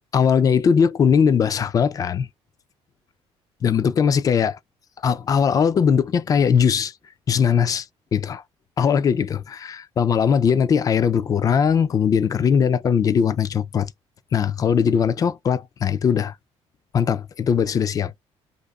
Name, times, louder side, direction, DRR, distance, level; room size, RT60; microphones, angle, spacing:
voice 1, 0.1-2.3 3.6-4.6 5.0-6.9 7.3-7.9 8.1-8.4 8.8-13.9 14.3-16.3 16.9-18.1, left 7 dB, 30° left, 0.4 m, -20 dB
2.7 x 2.5 x 3.6 m
cardioid pair, 145°, 11 cm